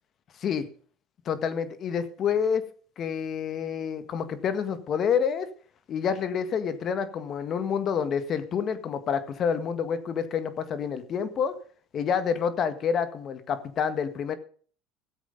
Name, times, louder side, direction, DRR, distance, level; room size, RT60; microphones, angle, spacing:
voice 1, 1.3-2.6 3.0-5.5 5.9-11.5 11.9-14.3, left 7 dB, 45° left, 11 dB, 1.8 m, -28 dB
14.5 x 8.2 x 5.2 m, 0.43 s
supercardioid pair, 95°, 0 cm